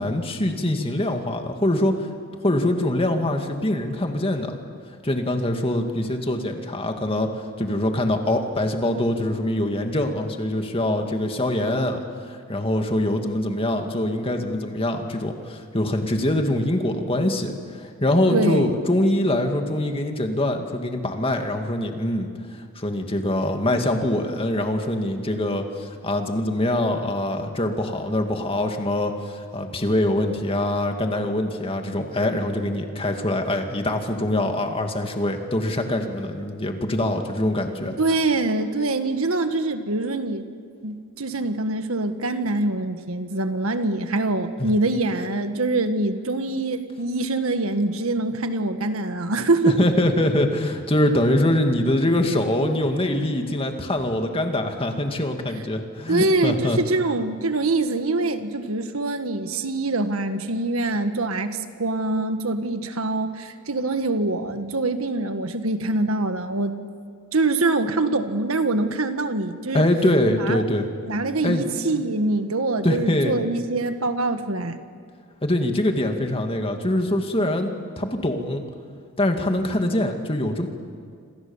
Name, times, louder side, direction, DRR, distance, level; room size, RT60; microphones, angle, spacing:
voice 1, 0.0-2.1 2.4-4.6 5.0-12.0 12.3-22.3 22.8-38.0 44.6-44.7 49.6-56.8 69.7-70.9 71.4-71.7 71.9-72.0 72.8-73.4 75.4-78.6 79.2-80.7, left 1 dB, 25° left, 4 dB, 2.3 m, -24 dB
voice 2, 18.3-18.7 38.0-40.4 40.8-49.8 56.1-66.8 67.3-69.9 70.3-70.6 71.0-74.8, right 2 dB, 75° right, 8 dB, 1.6 m, -24 dB
28.0 x 26.0 x 7.3 m, 2.2 s
head